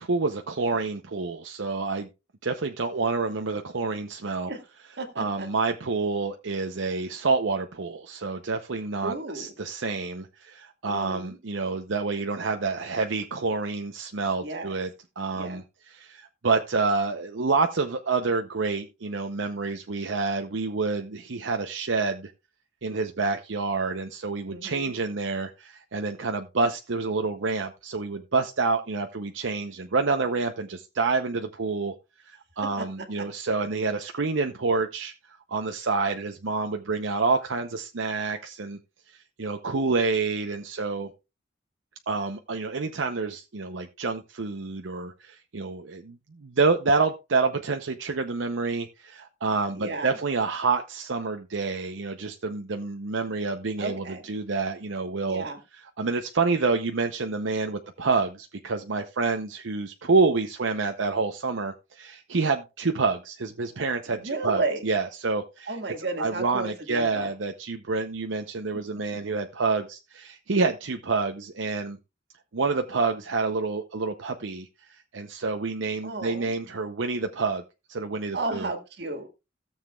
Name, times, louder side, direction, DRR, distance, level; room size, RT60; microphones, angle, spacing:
voice 1, 0.0-2.1 2.4-4.5 5.2-14.9 15.2-22.3 22.8-31.9 32.3-38.8 39.4-41.1 42.1-55.4 56.0-65.7 66.2-72.0 72.5-77.6 77.9-78.7, right 4 dB, 80° right, 5 dB, 0.7 m, -28 dB
voice 2, 5.0-5.5 9.0-9.5 10.9-11.4 14.4-14.7 15.3-15.6 24.5-24.9 32.8-33.3 49.7-50.2 53.8-54.2 55.3-55.6 64.1-64.9 65.7-67.3 76.0-76.5 78.3-79.3, right 3 dB, 60° right, 6 dB, 1.9 m, -33 dB
16.5 x 7.3 x 2.4 m, 0.26 s
head